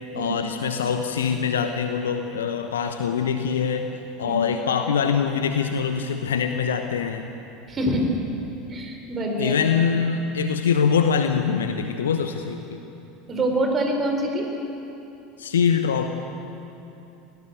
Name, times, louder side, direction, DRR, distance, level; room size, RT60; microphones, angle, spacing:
voice 1, 0.1-3.9 4.2-7.3 9.4-12.8 15.4-16.1, left 6 dB, 70° left, 6 dB, 1.0 m, -23 dB
voice 2, 7.7-8.2 8.7-9.5 13.3-14.5, right 1 dB, 30° right, 2 dB, 4.6 m, -25 dB
22.0 x 18.0 x 8.1 m, 3.0 s
figure-of-eight pair, 75°, 0 cm